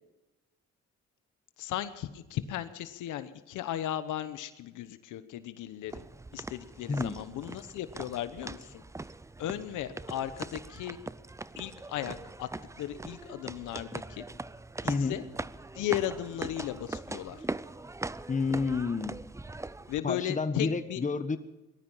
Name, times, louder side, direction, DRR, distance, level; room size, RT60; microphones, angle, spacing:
voice 1, 1.6-6.0 6.3-8.8 9.4-11.0 11.6-12.5 12.8-14.2 14.8-15.2 15.7-17.4 19.9-21.0, left 12 dB, 85° left, 12 dB, 1.1 m, -36 dB
sound 1, 5.9-20.0, right 2 dB, 10° right, 0.5 m, -41 dB
voice 2, 6.9-7.2 14.9-15.2 18.3-19.2 20.0-21.4, left 4 dB, 25° left, 10 dB, 1.3 m, -30 dB
19.5 x 12.5 x 5.7 m, 1.0 s
cardioid pair, 90°, 30 cm